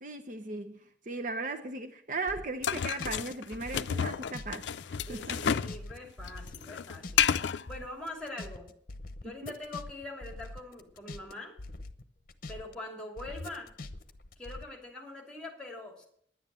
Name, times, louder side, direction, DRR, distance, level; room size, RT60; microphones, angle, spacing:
voice 1, 0.0-4.6 4.9-5.6 9.4-9.5, right 3 dB, 45° right, 7 dB, 0.7 m, -37 dB
sound 1, 2.3-4.6 4.8-7.4 7.7-11.3 11.6-12.8 13.2-14.6, left 2 dB, 50° left, 0.9 m, -43 dB
sound 2, 2.6-5.8 6.0-7.6, left 8 dB, 80° left, 0.4 m, -30 dB
voice 2, 5.1-7.3 7.7-8.7 9.2-11.6 12.5-13.7 14.4-16.0, left 2 dB, 5° left, 2 dB, 2.8 m, -43 dB
10.5 x 9.4 x 7.6 m, 0.66 s
head